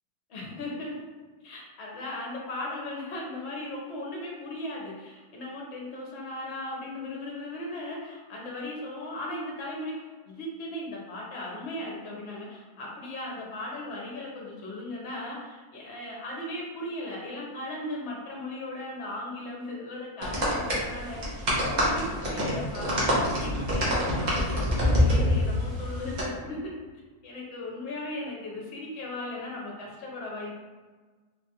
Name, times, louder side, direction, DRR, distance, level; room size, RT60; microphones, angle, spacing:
voice 1, 0.3-0.9 1.4-26.7 27.2-30.5, left 1 dB, 55° left, -3 dB, 1.0 m, -37 dB
sound 1, 20.2-26.2, left 1 dB, 40° right, 0.7 m, -26 dB
3.1 x 2.4 x 2.8 m, 1.4 s
omnidirectional pair, 1.5 m